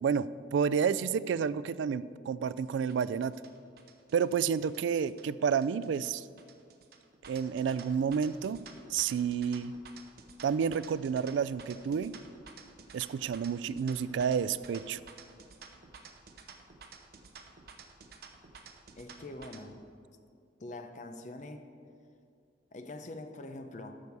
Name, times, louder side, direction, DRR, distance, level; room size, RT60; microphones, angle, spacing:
voice 1, 0.0-3.3 4.1-6.2 7.3-8.6 8.9-9.7 10.4-12.2 12.9-15.0, right 7 dB, 85° right, 15 dB, 0.3 m, -30 dB
sound 1, 2.9-19.6, right 5 dB, 55° right, 0.8 m, -52 dB
voice 2, 19.0-19.8 20.6-21.6 22.7-23.9, left 2 dB, 40° left, 7 dB, 0.7 m, -44 dB
12.5 x 6.6 x 4.7 m, 2.3 s
head